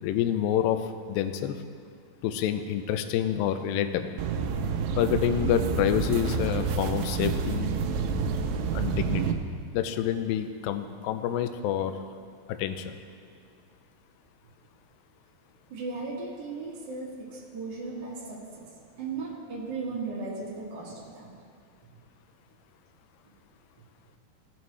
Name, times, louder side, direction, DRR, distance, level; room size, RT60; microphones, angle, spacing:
voice 1, 0.0-0.8 1.1-1.6 2.2-4.1 5.0-7.7 8.7-9.4 9.7-11.9 12.5-13.0, left 10 dB, 85° left, 9 dB, 2.0 m, -27 dB
sound 1, 4.2-9.3, right 5 dB, 90° right, 2.8 m, -28 dB
voice 2, 15.7-18.7 19.0-21.3, right 3 dB, 70° right, -5 dB, 1.0 m, -36 dB
16.5 x 7.1 x 3.2 m, 2.4 s
omnidirectional pair, 4.7 m